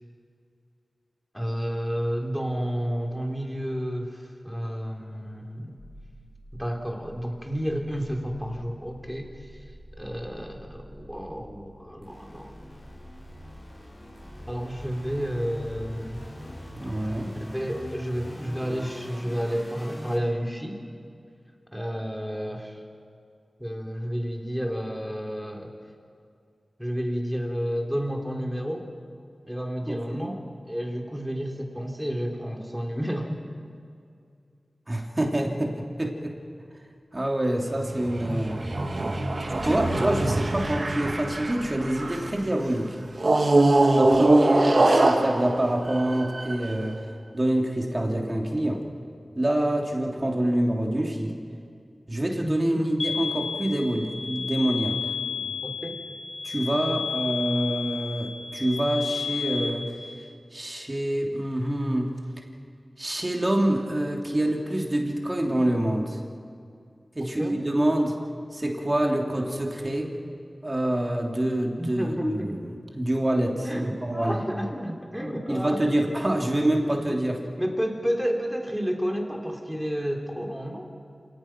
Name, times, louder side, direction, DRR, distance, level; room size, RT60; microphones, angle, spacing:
voice 1, 1.3-5.8 6.5-9.5 10.0-12.7 14.5-16.2 17.4-20.8 21.7-22.8 23.6-25.8 26.8-28.9 29.5-33.4 52.3-52.9 55.6-56.0 67.4-67.6 71.8-72.6 73.6-75.8 77.1-77.2 77.6-80.9, equal, ahead, 2 dB, 3.6 m, -31 dB
sound 1, 5.8-20.2, equal, 40° left, 7.4 m, -44 dB
voice 2, 16.7-17.3 29.8-30.3 34.9-36.4 37.1-38.6 39.6-43.0 43.9-47.0 47.3-48.8 49.3-51.4 52.1-55.0 55.3-55.5 56.4-59.9 60.5-62.1 63.0-66.2 67.1-68.2 68.5-70.1 70.6-72.6 73.0-74.4 75.5-77.4, right 1 dB, 30° right, 1 dB, 3.2 m, -26 dB
sound 2, 37.7-42.4 43.2-46.8, right 2 dB, 60° right, 2.1 m, -23 dB
sound 3, 53.0-59.6, left 6 dB, 85° left, 3.8 m, -32 dB
27.5 x 18.5 x 6.1 m, 2.4 s
cardioid pair, 45°, 0 cm